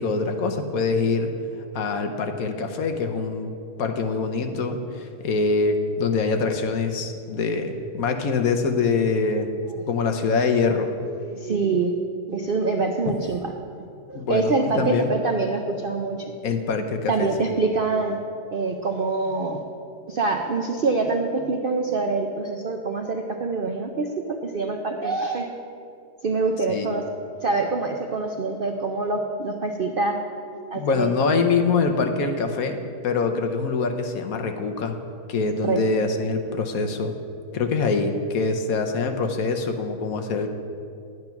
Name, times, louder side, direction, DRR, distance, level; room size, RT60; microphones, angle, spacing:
voice 1, 0.0-1.3 1.7-3.5 3.8-9.5 9.9-10.9 14.1-15.1 16.4-17.3 26.7-26.9 30.7-35.0 35.3-37.1 37.5-40.5, left 4 dB, 65° left, 6 dB, 1.2 m, -24 dB
voice 2, 11.2-11.9 12.3-13.5 14.1-16.3 17.1-18.2 18.5-19.6 20.1-25.5 26.2-27.0 27.4-30.2 30.7-31.4 35.6-36.0, right 3 dB, 60° right, 3 dB, 0.5 m, -25 dB
10.5 x 9.2 x 5.8 m, 2.5 s
omnidirectional pair, 1.7 m